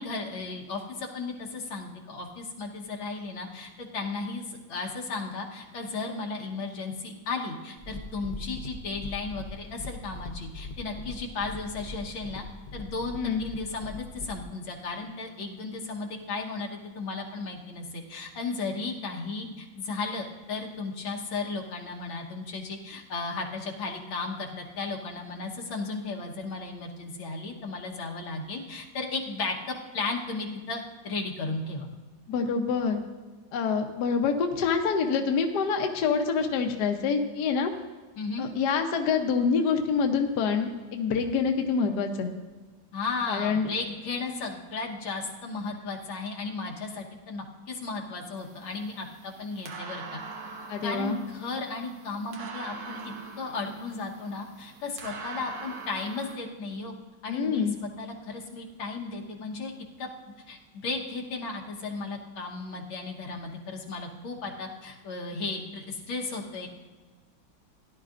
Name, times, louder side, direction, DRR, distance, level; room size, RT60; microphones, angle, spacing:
voice 1, 0.0-12.4 12.7-31.9 38.2-38.5 42.9-50.2 50.8-56.9 57.2-59.7 60.0-60.1 60.5-66.7, left 3 dB, 85° left, 0 dB, 2.0 m, -35 dB
sound 1, 7.8-14.5, left 2 dB, 45° left, 0.6 m, -41 dB
voice 2, 32.3-33.0 33.5-37.7 38.4-42.3 43.3-43.7 50.7-51.2 57.3-57.7, left 5 dB, 65° left, 4 dB, 1.3 m, -26 dB
sound 2, 48.4-56.4, right 4 dB, 70° right, 1.6 m, -43 dB
16.5 x 11.0 x 2.5 m, 1.3 s
omnidirectional pair, 2.1 m